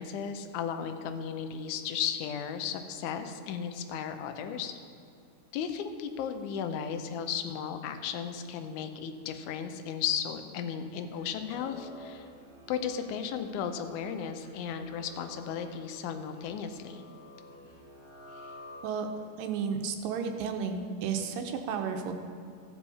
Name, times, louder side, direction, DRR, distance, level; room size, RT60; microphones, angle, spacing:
voice 1, 0.0-4.7 5.5-12.3 12.7-17.0, left 8 dB, 75° left, 7 dB, 1.9 m, -35 dB
sound 1, 11.0-19.3, left 1 dB, 25° left, 2.9 m, -51 dB
voice 2, 19.4-22.1, right 6 dB, 85° right, 5 dB, 2.5 m, -32 dB
15.5 x 7.2 x 4.2 m, 2.5 s
omnidirectional pair, 3.9 m